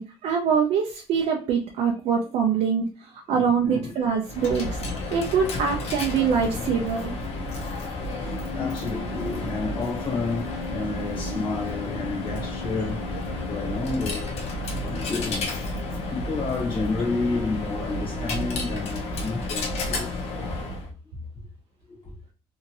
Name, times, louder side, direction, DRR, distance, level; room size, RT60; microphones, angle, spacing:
voice 1, 0.0-4.8 5.1-7.1, right 6 dB, 75° right, 0.6 m, -24 dB
voice 2, 3.3-4.1 6.4-6.8 8.2-14.3 14.7-20.5 21.9-22.1, left 3 dB, 50° left, 1.1 m, -31 dB
Coin (dropping), 4.2-20.9, left 2 dB, 70° left, 0.8 m, -31 dB
2.9 x 2.6 x 2.6 m
cardioid pair, 100°, 11 cm